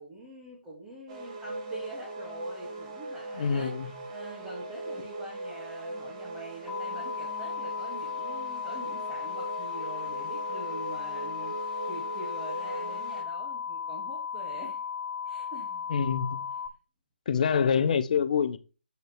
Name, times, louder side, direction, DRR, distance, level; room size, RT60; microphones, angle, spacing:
voice 1, 0.0-14.8 15.2-15.9, right 1 dB, 15° right, 2.5 m, -45 dB
sound 1, 1.1-13.2, right 2 dB, 35° right, 2.2 m, -40 dB
voice 2, 3.3-4.0 15.9-16.5 17.3-18.6, left 6 dB, 45° left, 0.9 m, -26 dB
sound 2, 6.7-16.7, left 7 dB, 5° left, 0.8 m, -36 dB
8.1 x 5.1 x 4.7 m
figure-of-eight pair, 150°, 6 cm